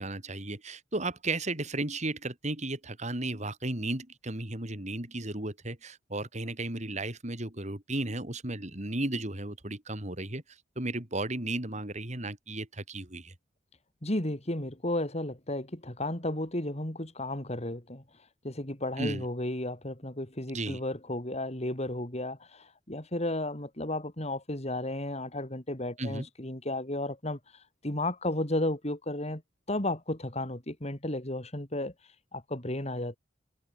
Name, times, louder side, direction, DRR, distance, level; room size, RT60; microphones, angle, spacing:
voice 1, 0.0-10.4 10.7-13.3 19.0-19.2 20.5-20.8 26.0-26.3, right 2 dB, 40° right, 3.4 m, -34 dB
voice 2, 14.0-18.0 18.4-27.4 27.8-29.4 29.7-31.9 32.3-33.2, left 1 dB, 35° left, 3.5 m, -33 dB
head